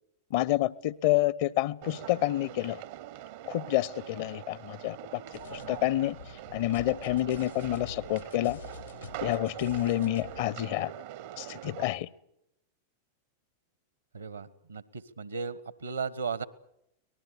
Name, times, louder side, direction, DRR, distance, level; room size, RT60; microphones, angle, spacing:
voice 1, 0.3-2.8 3.5-5.2 5.5-6.2 6.5-8.6 9.2-10.9 11.4-12.1, left 15 dB, 50° left, 0.8 m, -28 dB
sound 1, 1.8-11.8, right 13 dB, 50° right, 0.8 m, -43 dB
sound 2, 5.3-10.5, left 8 dB, 75° left, 1.3 m, -47 dB
voice 2, 14.1-16.4, right 5 dB, 75° right, 1.4 m, -36 dB
24.0 x 19.5 x 8.5 m
figure-of-eight pair, 90°, 0 cm